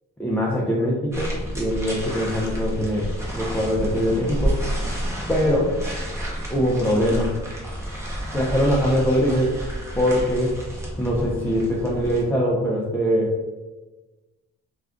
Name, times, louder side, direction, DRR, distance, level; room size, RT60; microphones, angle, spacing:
voice 1, 0.2-3.1 3.3-4.6 5.3-5.8 6.5-7.3 8.3-9.5 9.9-10.5 11.0-13.3, equal, 5° left, -5 dB, 0.5 m, -22 dB
sound 1, 1.1-12.2, equal, 10° right, 0.9 m, -30 dB
2.4 x 2.3 x 3.5 m, 1.2 s
cardioid pair, 90°, 30 cm